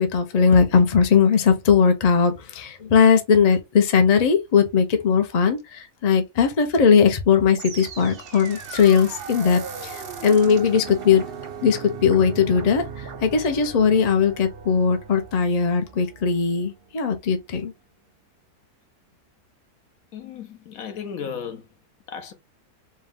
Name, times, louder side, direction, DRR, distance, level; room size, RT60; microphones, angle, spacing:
voice 1, 0.0-11.2 11.6-17.7, left 6 dB, 40° left, 0.5 m, -19 dB
sound 1, 7.5-16.7, right 6 dB, 50° right, 0.8 m, -37 dB
voice 2, 20.1-21.7 22.1-22.3, left 7 dB, 65° left, 1.2 m, -34 dB
4.4 x 2.3 x 3.5 m
omnidirectional pair, 1.7 m